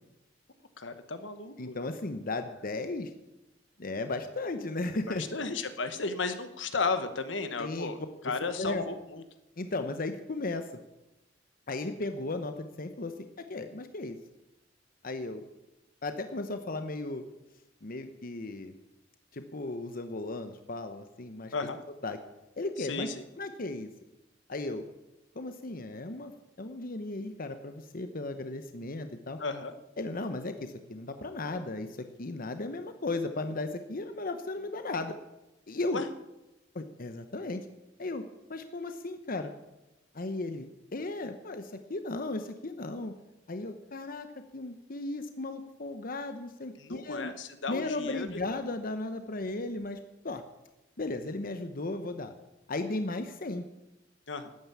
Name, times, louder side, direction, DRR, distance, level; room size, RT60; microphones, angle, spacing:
voice 1, 0.8-1.8 5.1-9.2 21.5-21.8 22.8-23.2 29.4-29.7 35.9-36.1 46.8-48.4 54.3-54.6, left 4 dB, 75° left, 10 dB, 1.3 m, -34 dB
voice 2, 1.6-3.1 3.8-5.2 7.6-7.9 8.6-8.9 9.6-10.7 11.7-13.1 13.4-14.2 15.0-15.4 16.0-17.2 17.8-18.7 19.3-21.5 22.0-22.2 22.6-23.1 23.4-23.9 24.5-24.8 25.3-26.3 26.6-29.4 30.0-35.2 35.7-36.0 36.7-37.7 38.0-38.2 38.5-39.5 40.1-43.1 43.5-44.3 44.5-47.4 47.7-50.4 51.0-52.3 52.7-53.6, left 2 dB, 50° left, 8 dB, 1.0 m, -35 dB
13.0 x 9.4 x 8.4 m, 0.98 s
head